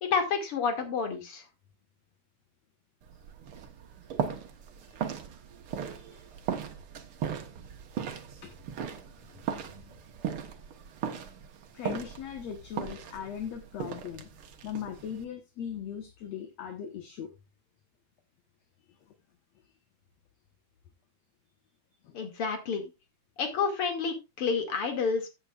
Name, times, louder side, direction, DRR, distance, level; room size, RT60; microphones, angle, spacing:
voice 1, 0.0-1.4 22.1-22.9 23.4-25.3, left 5 dB, 50° left, 4 dB, 3.2 m, -29 dB
sound 1, 3.0-15.2, right 8 dB, 55° right, 1.8 m, -38 dB
voice 2, 5.8-6.2 8.4-8.5 9.3-9.4 9.8-10.0 11.7-14.3 14.6-17.3 22.0-22.2, left 8 dB, 65° left, 5 dB, 2.4 m, -39 dB
15.5 x 8.2 x 2.5 m, 0.25 s
omnidirectional pair, 3.4 m